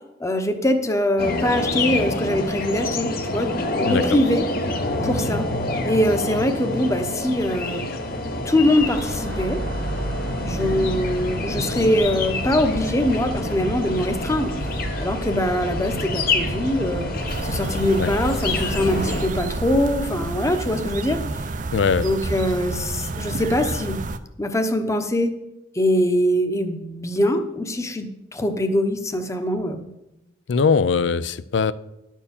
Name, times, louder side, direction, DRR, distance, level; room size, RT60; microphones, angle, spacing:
voice 1, 0.2-4.5 5.0-5.5 5.8-7.9 8.4-9.6 10.4-14.5 15.0-17.1 17.4-21.2 22.0-24.0 24.4-25.3 25.7-29.9, left 1 dB, 15° left, 6 dB, 0.8 m, -23 dB
sound 1, 1.2-19.3, left 2 dB, 55° left, 0.9 m, -27 dB
sound 2, 8.7-20.0, right 1 dB, 75° right, 1.5 m, -32 dB
sound 3, 17.3-24.2, right 3 dB, 45° right, 0.5 m, -30 dB
voice 2, 21.7-22.1 30.5-31.7, left 5 dB, 70° left, 16 dB, 0.4 m, -20 dB
11.0 x 4.5 x 7.1 m, 0.91 s
head